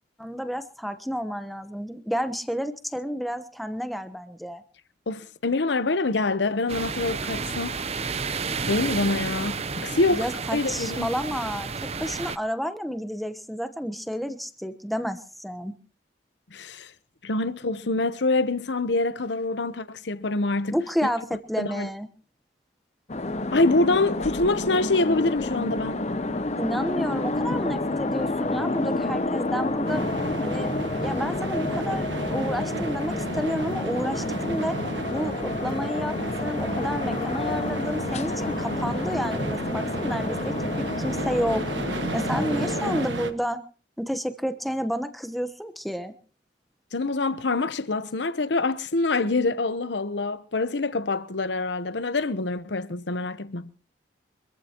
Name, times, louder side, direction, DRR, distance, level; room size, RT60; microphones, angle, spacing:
voice 1, 0.2-4.6 10.1-15.7 20.7-22.1 26.6-30.0 30.4-34.8 35.1-41.6 42.1-43.6 44.0-46.1, equal, ahead, 1.0 m, -30 dB
voice 2, 5.1-7.8 8.7-10.2 10.5-11.1 16.5-16.9 17.2-20.8 21.0-21.1 21.6-21.9 23.5-26.0 46.9-53.7, left 2 dB, 75° left, 0.9 m, -25 dB
sound 1, 6.7-12.4, right 5 dB, 35° right, 0.7 m, -31 dB
sound 2, 23.1-43.1, left 2 dB, 35° left, 0.8 m, -29 dB
sound 3, 29.9-43.3, right 2 dB, 85° right, 1.4 m, -33 dB
25.5 x 14.5 x 3.0 m
head